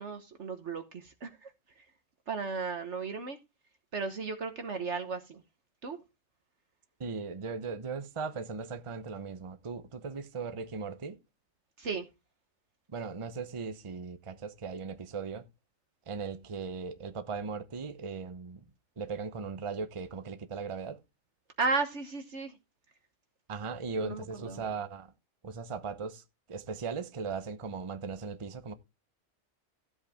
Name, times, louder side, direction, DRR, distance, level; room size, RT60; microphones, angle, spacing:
voice 1, 0.0-1.5 2.3-3.4 3.9-5.4 5.8-6.0 11.8-12.1 21.6-22.6 24.0-24.6, right 4 dB, 60° right, 1.4 m, -34 dB
voice 2, 7.0-11.2 12.9-15.4 16.1-18.7 19.0-21.0 23.5-25.1 25.4-26.2 26.5-28.7, right 5 dB, 30° right, 0.8 m, -38 dB
13.5 x 7.9 x 3.5 m
omnidirectional pair, 1.4 m